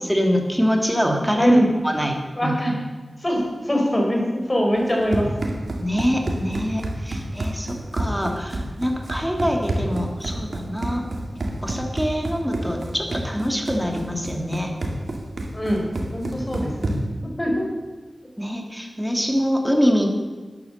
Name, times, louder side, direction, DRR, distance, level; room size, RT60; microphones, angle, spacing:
voice 1, 0.0-1.5 1.8-2.7 5.8-11.1 11.6-14.7 18.4-20.1, equal, ahead, 2 dB, 2.9 m, -24 dB
voice 2, 1.3-1.7 2.4-2.7 3.2-5.3 15.5-16.7 17.4-17.7, equal, 25° left, 0 dB, 4.9 m, -22 dB
Run, 4.8-17.2, right 1 dB, 70° right, 2.4 m, -29 dB
13.0 x 10.5 x 6.7 m, 1.3 s
cardioid pair, 50°, 0 cm